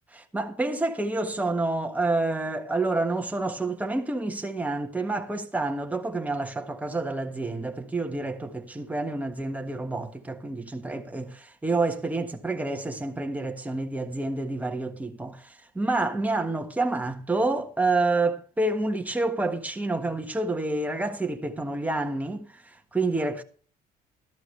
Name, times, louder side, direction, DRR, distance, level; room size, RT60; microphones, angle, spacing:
voice 1, 0.1-23.4, right 2 dB, 10° right, 1.4 m, -28 dB
13.5 x 12.0 x 3.3 m
cardioid pair, 110°, 17 cm